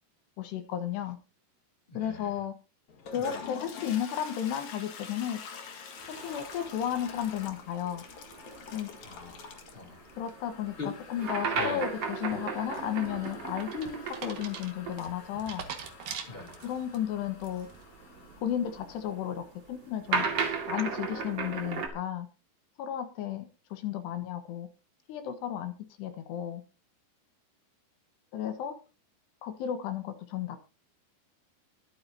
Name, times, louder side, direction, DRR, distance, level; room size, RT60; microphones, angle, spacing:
voice 1, 0.4-1.2 1.9-2.5 3.1-5.4 6.1-8.0 8.7-8.9 10.2-15.6 16.6-17.7 18.4-20.3 20.7-22.3 22.8-24.7 25.1-25.7 26.0-26.6 28.3-28.7 29.4-30.6, left 10 dB, 75° left, 8 dB, 3.4 m, -33 dB
voice 2, 1.9-2.3 3.2-3.4 9.0-9.4 9.7-10.0 10.8-10.9 11.6-11.8 16.3-16.5, left 4 dB, 15° left, 2 dB, 2.8 m, -40 dB
Toilet flush, 2.9-19.6, left 5 dB, 50° left, 2.7 m, -47 dB
sound 1, 6.0-15.0 15.2-15.3 16.3-21.9, right 5 dB, 40° right, 2.7 m, -36 dB
sound 2, 12.7-17.0 17.4-17.8, right 7 dB, 60° right, 3.1 m, -43 dB
23.0 x 8.8 x 2.8 m, 0.31 s
omnidirectional pair, 5.0 m